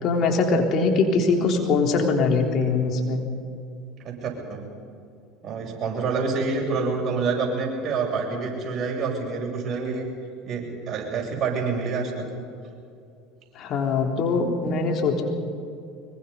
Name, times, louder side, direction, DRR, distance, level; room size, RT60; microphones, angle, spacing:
voice 1, 0.0-3.2 13.6-15.2, left 4 dB, 50° left, 2 dB, 3.6 m, -22 dB
voice 2, 4.0-4.6 5.4-10.1 10.4-12.1, right 4 dB, 40° right, -1 dB, 7.9 m, -27 dB
24.5 x 23.0 x 5.7 m, 2.5 s
hypercardioid pair, 80°, 0 cm